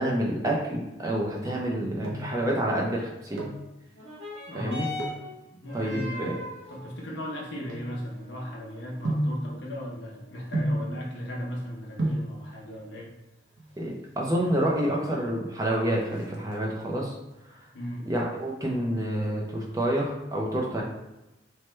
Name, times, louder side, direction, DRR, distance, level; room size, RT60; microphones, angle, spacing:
voice 1, 0.0-3.4 4.5-4.9 5.7-6.4 13.8-17.1 18.0-20.8, right 1 dB, 20° right, -2 dB, 0.4 m, -28 dB
sound 1, 2.0-2.4 3.2-3.7 4.9-5.3 6.0-8.4 9.0-9.4 10.5-10.9 11.7-11.8 12.0-12.3 13.5-14.0 14.3-14.4 14.6-14.8 15.1-15.5 15.8-16.9 17.3-17.7 18.1-19.3 19.5-19.6, right 1 dB, 65° right, 0.6 m, -32 dB
sound 2, 3.9-12.9 13.7-13.8, left 2 dB, 85° right, 1.3 m, -43 dB
voice 2, 4.5-4.8 5.5-6.3 6.7-13.1 17.7-18.1 20.6-20.8, equal, 65° left, -1 dB, 0.7 m, -37 dB
3.0 x 2.1 x 3.1 m, 0.96 s
head